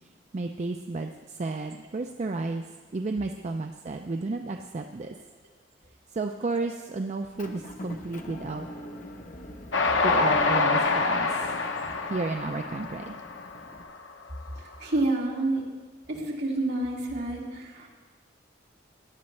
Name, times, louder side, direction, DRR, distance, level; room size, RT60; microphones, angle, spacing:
voice 1, 0.3-2.6 2.9-5.1 6.1-8.7 10.0-11.5 12.1-13.1, right 3 dB, 40° right, 5 dB, 0.4 m, -32 dB
Motor vehicle (road) / Engine, 7.4-13.8, left 1 dB, 45° left, 1.0 m, -44 dB
Train, 9.7-14.1, left 3 dB, 80° left, 0.9 m, -26 dB
voice 2, 14.6-15.7 16.1-17.9, right 2 dB, 65° right, -3 dB, 2.4 m, -29 dB
17.5 x 10.5 x 3.3 m, 1.4 s
head